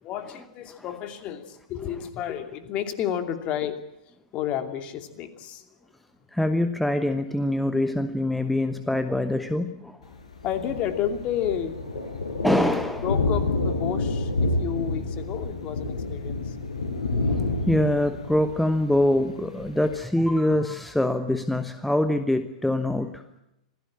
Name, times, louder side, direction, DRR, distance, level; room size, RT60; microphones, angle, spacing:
voice 1, 0.0-5.7 10.4-11.8 13.0-16.6, left 10 dB, 30° left, 7 dB, 2.7 m, -31 dB
voice 2, 6.3-10.0 12.4-13.0 17.3-23.2, left 1 dB, ahead, 10 dB, 1.1 m, -24 dB
Thunder, 10.0-20.0, left 3 dB, 70° left, 5.1 m, -29 dB
26.5 x 17.0 x 8.7 m, 0.86 s
figure-of-eight pair, 105°, 4 cm